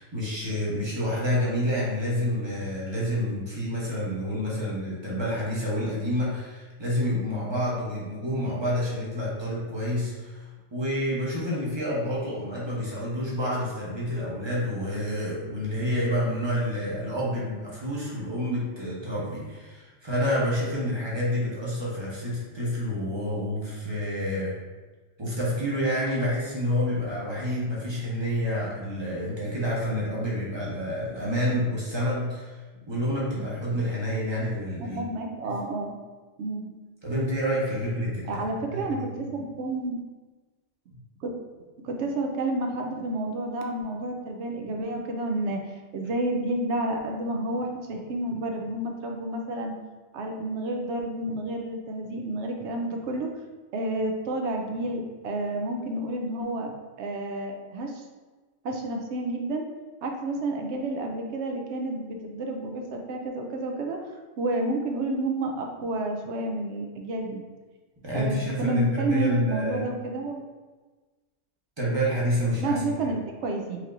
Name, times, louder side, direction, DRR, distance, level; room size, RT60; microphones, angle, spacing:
voice 1, 0.0-10.5 10.7-24.5 25.2-32.6 32.9-35.0 35.4-35.5 37.0-38.4 38.7-38.8 68.0-69.8 71.8-72.8, equal, 25° right, -7 dB, 0.9 m, -28 dB
voice 2, 34.8-36.0 36.4-36.7 38.3-40.0 41.2-41.3 41.8-45.6 45.9-49.8 50.1-53.3 53.7-56.7 57.0-58.0 58.6-59.6 60.0-64.0 64.4-67.4 68.1-70.4 72.6-73.8, right 2 dB, 70° right, 2 dB, 0.8 m, -30 dB
4.6 x 2.8 x 2.5 m, 1.3 s
omnidirectional pair, 1.3 m